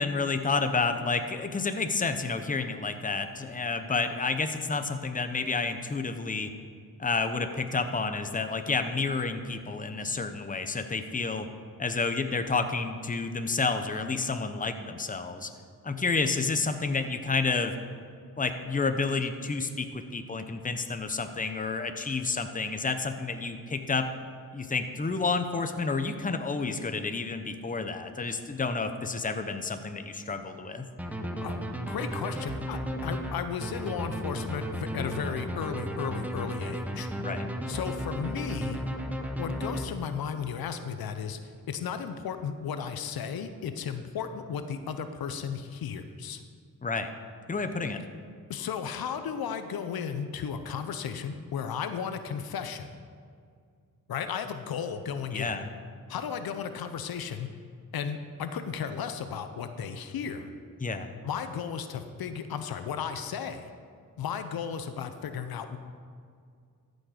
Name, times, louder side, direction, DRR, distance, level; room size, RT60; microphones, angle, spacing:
voice 1, 0.0-6.5 7.0-11.5 11.8-15.5 15.8-17.7 18.4-24.1 24.5-30.9 37.2-37.5 46.8-47.1 47.5-48.0 55.3-55.7 60.8-61.2, left 4 dB, 25° left, 8 dB, 0.8 m, -30 dB
sound 1, 31.0-40.3, equal, 5° right, 1.0 m, -34 dB
voice 2, 31.9-37.1 37.7-38.8 39.4-41.4 41.7-46.4 48.5-52.9 54.1-55.5 56.1-57.5 57.9-60.5 61.2-63.7 64.2-65.8, left 7 dB, 85° left, 9 dB, 0.7 m, -34 dB
14.0 x 6.3 x 5.0 m, 2.2 s
cardioid pair, 75°, 35 cm